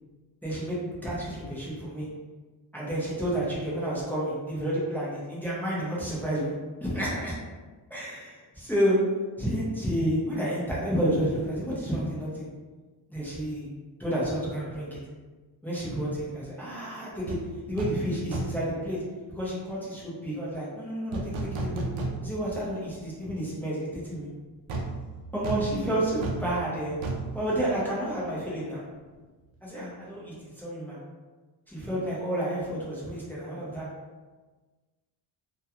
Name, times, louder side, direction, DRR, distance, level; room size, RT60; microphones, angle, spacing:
voice 1, 0.4-2.1 2.7-6.5 6.8-7.4 7.9-9.0 9.4-12.5 13.1-13.7 14.0-15.0 15.6-17.4 17.7-19.0 19.3-21.8 22.2-24.3 25.3-27.0 27.3-28.9 29.6-31.0 31.7-33.9, right 1 dB, 5° left, -8 dB, 0.5 m, -30 dB
sound 1, 17.3-17.4 17.8-18.0 18.3-18.7 21.1-22.5 22.9-23.0 24.7-28.3 28.6-28.8, right 2 dB, 70° right, 0.6 m, -34 dB
2.4 x 2.2 x 2.8 m, 1.3 s
wide cardioid pair, 155°, 50 cm